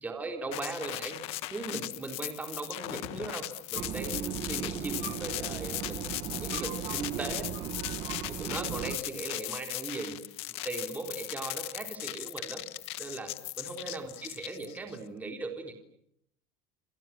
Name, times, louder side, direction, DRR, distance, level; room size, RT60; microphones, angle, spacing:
voice 1, 0.0-7.5 8.3-10.2 10.5-12.6 13.0-13.3 13.6-15.8, right 3 dB, 15° right, 4 dB, 3.7 m, -38 dB
sound 1, 0.5-15.0, left 19 dB, 55° left, 1.4 m, -38 dB
sound 2, 3.8-9.0, right 10 dB, 45° right, 1.9 m, -37 dB
30.0 x 26.5 x 7.4 m, 0.74 s
cardioid pair, 150°, 12 cm